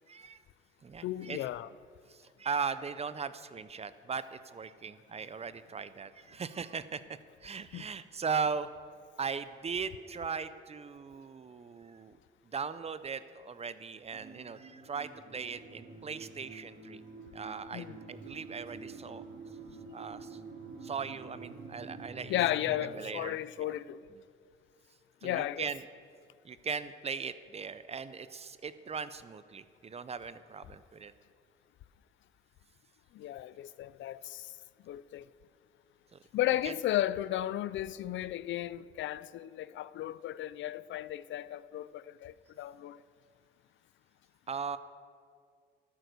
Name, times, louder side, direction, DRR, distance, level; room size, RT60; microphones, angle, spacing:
voice 1, 0.1-0.4 0.8-1.5 2.1-7.0 7.4-8.7 9.2-12.2 12.4-17.0 17.3-19.2 19.9-20.4 20.8-23.8 24.1-24.2 25.2-25.8 26.4-31.1 36.1-36.2 36.5-36.7 44.5-44.8, right 5 dB, 30° right, 0.6 m, -39 dB
voice 2, 1.0-1.7 7.7-7.8 17.7-18.0 22.3-24.0 25.2-25.7 33.1-34.5 34.9-35.2 36.3-43.0, left 13 dB, 70° left, 0.5 m, -34 dB
sound 1, 14.1-22.9, right 3 dB, 60° right, 2.3 m, -48 dB
12.5 x 9.3 x 6.7 m
cardioid pair, 90°, 20 cm